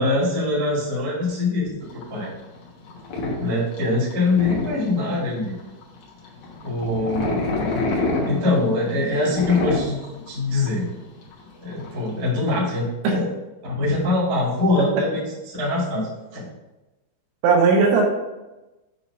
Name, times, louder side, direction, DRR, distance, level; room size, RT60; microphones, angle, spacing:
voice 1, 0.0-2.3 3.4-5.5 6.6-7.4 8.2-10.0 10.3-10.8 11.6-13.3 13.6-16.5, left 2 dB, 35° right, -6 dB, 1.6 m, -23 dB
sound 1, 1.8-12.3, left 2 dB, 85° left, 1.7 m, -28 dB
voice 2, 17.4-18.0, right 4 dB, 75° right, -1 dB, 3.1 m, -18 dB
8.6 x 3.0 x 5.1 m, 1.0 s
omnidirectional pair, 5.5 m